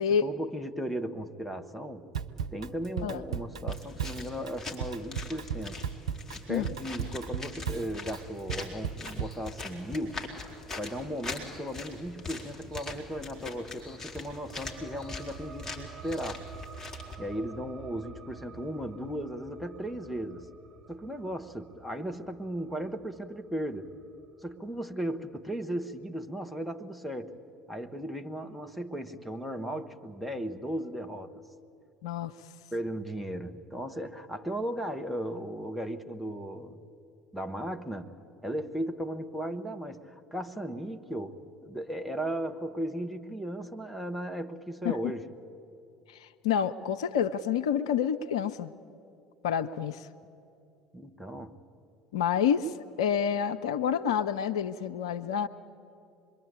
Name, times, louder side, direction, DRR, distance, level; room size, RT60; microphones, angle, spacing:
voice 1, 0.2-2.1 2.5-5.8 6.5-10.3 10.8-16.4 17.2-20.5 20.9-23.9 24.4-27.3 27.7-31.4 32.7-36.8 37.3-38.1 38.4-45.3 50.9-51.6, equal, ahead, 4 dB, 1.6 m, -36 dB
Drum kit / Drum, 2.1-9.5, right 8 dB, 75° right, 0.8 m, -36 dB
sound 1, 3.7-17.1, left 3 dB, 20° left, 4.3 m, -42 dB
sound 2, 13.8-24.9, right 5 dB, 30° right, 4.1 m, -49 dB
voice 2, 46.1-48.7 49.4-50.1 52.1-55.5, left 8 dB, 70° left, 11 dB, 0.6 m, -28 dB
26.0 x 22.5 x 8.6 m, 2.6 s
figure-of-eight pair, 60°, 3 cm